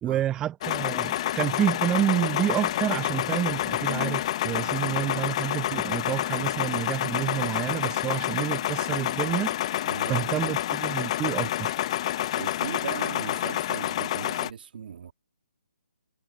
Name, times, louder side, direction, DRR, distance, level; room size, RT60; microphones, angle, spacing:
voice 1, 0.0-9.5 10.1-11.8, right 11 dB, 10° right, 0.6 m, -29 dB
sound 1, 0.6-14.5, left 13 dB, 30° left, 0.7 m, -28 dB
voice 2, 9.8-10.5 12.3-15.1, right 7 dB, 50° right, 1.9 m, -38 dB
hypercardioid pair, 160°, 7 cm